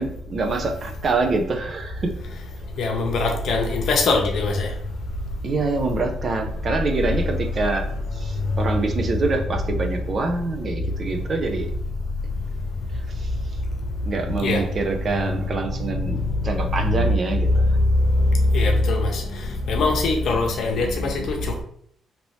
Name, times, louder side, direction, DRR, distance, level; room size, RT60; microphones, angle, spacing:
voice 1, 0.0-2.1 5.4-7.9 8.1-11.7 13.1-13.3 14.0-17.7, right 3 dB, 45° right, 4 dB, 0.5 m, -25 dB
voice 2, 2.8-4.7 14.4-14.6 16.9-17.1 17.5-17.9 18.5-19.2 19.7-21.6, left 3 dB, 65° left, 2 dB, 0.7 m, -21 dB
2.9 x 2.7 x 3.0 m, 0.64 s
cardioid pair, 90°, 0 cm